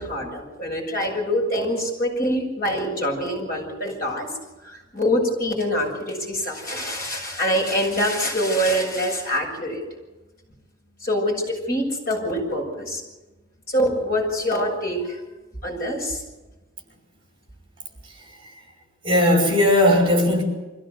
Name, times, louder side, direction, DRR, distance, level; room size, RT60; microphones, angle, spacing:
voice 1, 0.0-4.3 4.6-9.8 11.0-13.0 13.7-15.2 15.6-16.2, equal, 45° left, 0 dB, 7.1 m, -25 dB
voice 2, 19.0-20.4, left 1 dB, 25° right, 4 dB, 5.3 m, -18 dB
24.5 x 16.0 x 8.0 m, 1.1 s
head